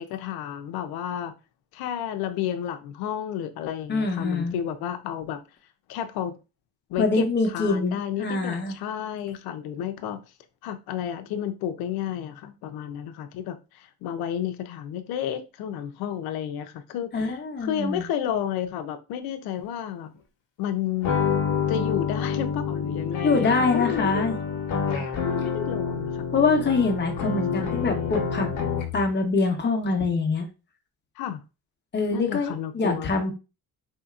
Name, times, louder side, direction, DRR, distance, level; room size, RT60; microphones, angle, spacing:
voice 1, 0.0-1.3 1.7-5.4 5.9-6.3 6.9-10.2 10.6-20.1 20.6-21.1 21.7-24.3 25.2-26.2 27.3-27.4 31.2-31.4 32.1-33.1, left 9 dB, 80° left, 0.6 m, -31 dB
voice 2, 3.9-4.6 7.0-8.7 17.1-18.0 23.2-24.3 26.3-28.5 28.9-30.5 31.9-33.3, left 3 dB, 30° left, 1.0 m, -24 dB
sound 1, 21.0-29.1, left 6 dB, 55° left, 1.1 m, -28 dB
4.2 x 2.8 x 2.4 m
cardioid pair, 110°, 37 cm